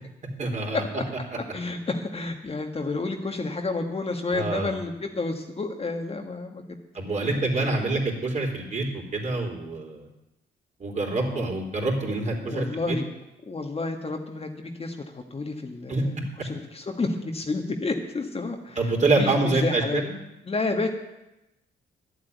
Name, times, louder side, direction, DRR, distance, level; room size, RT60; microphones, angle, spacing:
voice 1, 0.4-0.8 4.3-4.7 6.9-8.9 9.1-10.1 10.8-13.0 15.9-16.0 18.8-20.1, right 2 dB, 35° right, 0 dB, 3.9 m, -26 dB
voice 2, 1.5-6.6 7.2-7.3 7.6-7.7 11.2-11.5 12.5-13.1 13.5-20.0 20.4-20.9, left 3 dB, 30° left, 3 dB, 1.6 m, -30 dB
11.5 x 8.2 x 9.3 m, 0.92 s
cardioid pair, 90°, 20 cm